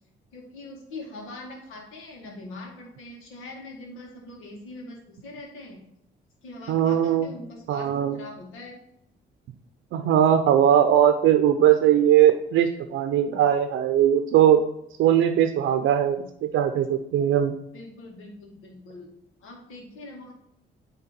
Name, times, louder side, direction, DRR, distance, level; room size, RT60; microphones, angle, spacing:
voice 1, 0.3-5.8 6.4-8.8 17.7-19.1 19.4-20.3, left 2 dB, 90° left, 1 dB, 2.0 m, -42 dB
voice 2, 6.7-7.3 7.7-8.2 9.9-14.6 15.0-16.3 16.5-17.5, right 10 dB, 80° right, 8 dB, 0.6 m, -20 dB
9.1 x 3.5 x 4.4 m, 0.79 s
cardioid pair, 90°, 20 cm